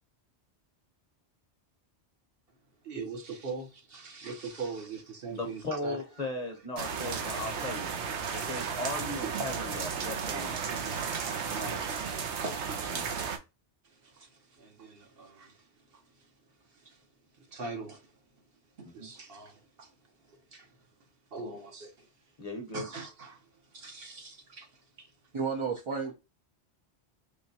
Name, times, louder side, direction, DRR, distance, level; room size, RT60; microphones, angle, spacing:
voice 1, 2.8-6.0 7.7-7.9 8.2-8.3 9.4-9.5 11.4-13.2 13.8-16.3 16.7-17.1 17.3-18.2 18.8-20.9 21.3-22.1 22.7-25.1 26.0-26.1, right 4 dB, 60° right, 1.1 m, -43 dB
voice 2, 5.3-7.9 8.3-10.6 12.9-13.1 19.0-19.1 22.4-22.9, left 2 dB, 40° left, 0.7 m, -37 dB
sound 1, 6.8-13.4, right 6 dB, 80° right, 1.0 m, -34 dB
voice 3, 25.3-26.1, right 5 dB, 40° right, 0.4 m, -31 dB
3.8 x 3.0 x 2.7 m
omnidirectional pair, 1.2 m